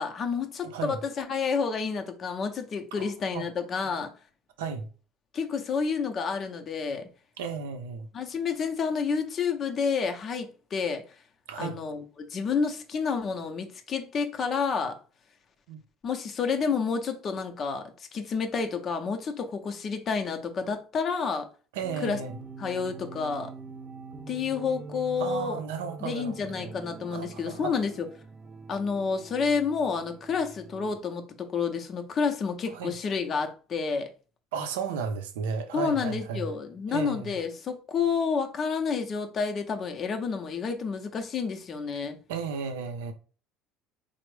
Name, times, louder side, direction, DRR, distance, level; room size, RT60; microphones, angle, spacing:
voice 1, 0.0-4.1 5.3-7.1 8.1-11.0 11.6-15.0 16.0-21.5 22.0-22.2 22.6-23.5 24.3-25.6 26.0-28.1 28.7-34.1 35.7-42.2, left 5 dB, 45° left, 0.6 m, -29 dB
voice 2, 0.6-1.0 3.0-3.5 4.6-4.9 7.4-8.1 11.5-11.8 15.7-15.8 21.7-22.4 25.2-26.7 27.1-27.8 32.7-32.9 34.5-36.5 36.9-37.3 42.3-43.1, right 5 dB, 85° right, 0.5 m, -34 dB
sound 1, 21.8-31.0, right 4 dB, 25° right, 0.4 m, -44 dB
3.3 x 2.0 x 3.1 m
supercardioid pair, 80°, 0 cm